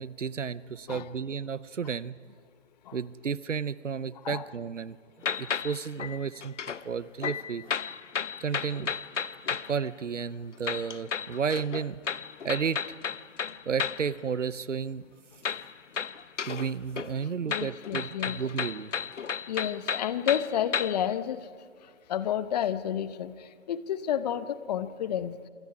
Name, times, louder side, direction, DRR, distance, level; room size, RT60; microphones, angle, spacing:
voice 1, 0.0-2.1 2.9-5.0 5.4-6.5 6.8-7.7 8.4-8.9 9.6-12.0 12.4-12.8 13.7-15.0 16.5-18.9, right 6 dB, 85° right, 18 dB, 0.8 m, -32 dB
sound 1, 5.2-6.8 7.2-9.8 10.6-14.1 15.4-16.7 17.0-21.1, left 7 dB, 80° left, 0.8 m, -33 dB
voice 2, 17.4-18.4 19.5-21.5 22.1-25.4, left 10 dB, 35° left, 14 dB, 0.9 m, -30 dB
27.5 x 23.5 x 4.9 m, 2.1 s
figure-of-eight pair, 135°, 36 cm